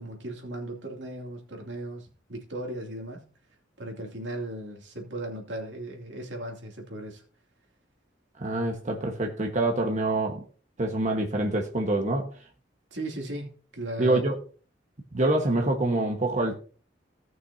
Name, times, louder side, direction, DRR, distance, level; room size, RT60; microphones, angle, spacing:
voice 1, 0.0-3.3 3.8-7.2 12.9-14.3, right 1 dB, 85° right, 2.7 m, -37 dB
voice 2, 8.4-10.4 10.8-12.3 14.0-14.3 15.1-16.6, right 2 dB, 40° right, 1.4 m, -26 dB
17.5 x 6.2 x 2.8 m
head